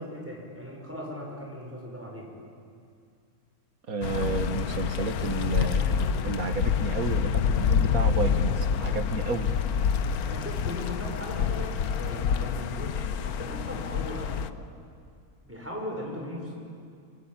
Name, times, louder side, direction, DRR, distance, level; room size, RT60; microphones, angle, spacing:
voice 1, 0.0-2.3 10.2-14.5 15.4-16.5, left 1 dB, 10° right, -1 dB, 5.8 m, -38 dB
voice 2, 3.9-9.5, right 4 dB, 70° right, 7 dB, 2.0 m, -31 dB
sound 1, 4.0-14.5, left 7 dB, 80° left, 1.3 m, -27 dB
25.0 x 24.5 x 8.9 m, 2.4 s
omnidirectional pair, 1.6 m